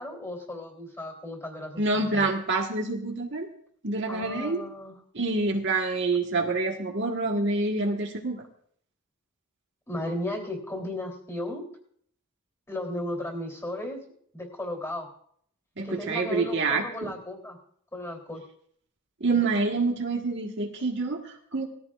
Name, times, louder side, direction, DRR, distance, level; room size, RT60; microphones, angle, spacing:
voice 1, 0.0-2.3 4.1-4.9 9.9-11.6 12.7-14.0 14.3-15.1 15.8-17.6 17.9-18.4, left 1 dB, 15° left, 0 dB, 3.2 m, -35 dB
voice 2, 1.8-3.5 3.8-4.6 5.1-8.4 15.8-17.1 19.2-21.6, right 3 dB, 55° right, 1 dB, 1.6 m, -27 dB
20.0 x 14.5 x 2.5 m, 0.64 s
head